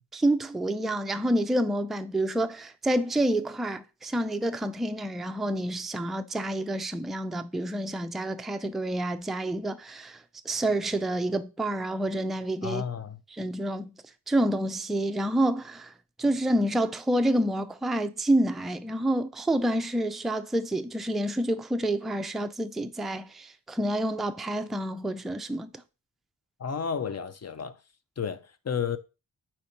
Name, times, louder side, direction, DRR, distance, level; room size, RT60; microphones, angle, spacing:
voice 1, 0.1-10.2 10.5-12.8 13.3-13.9 14.3-15.9 16.2-25.7, right 1 dB, ahead, 0.4 m, -28 dB
voice 2, 12.6-13.2 26.6-27.8 28.2-29.0, left 7 dB, 35° left, 0.7 m, -32 dB
4.4 x 4.2 x 5.1 m
cardioid pair, 75°, 44 cm